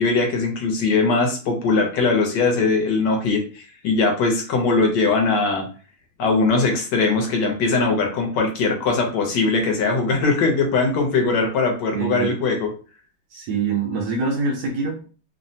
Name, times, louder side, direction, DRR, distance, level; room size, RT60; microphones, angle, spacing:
voice 1, 0.0-5.7 6.2-12.7, left 3 dB, 70° left, 2 dB, 1.2 m, -20 dB
voice 2, 11.9-12.3 13.3-15.0, right 4 dB, 75° right, 1 dB, 1.0 m, -24 dB
3.2 x 2.0 x 2.6 m, 0.38 s
omnidirectional pair, 2.1 m